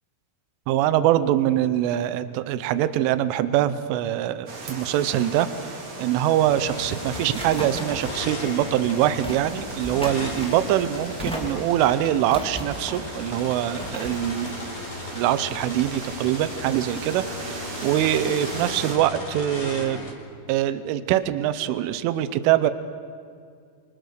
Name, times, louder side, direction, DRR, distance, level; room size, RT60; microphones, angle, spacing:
voice 1, 0.7-14.5 15.1-20.0 20.5-22.7, right 12 dB, 90° right, 13 dB, 3.4 m, -23 dB
sound 1, 4.5-19.0, right 3 dB, 40° right, 3.7 m, -38 dB
sound 2, 6.5-20.1, left 3 dB, 40° left, 3.7 m, -37 dB
sound 3, 7.0-15.8, equal, 5° left, 1.0 m, -38 dB
29.5 x 25.0 x 6.7 m, 2.2 s
omnidirectional pair, 5.5 m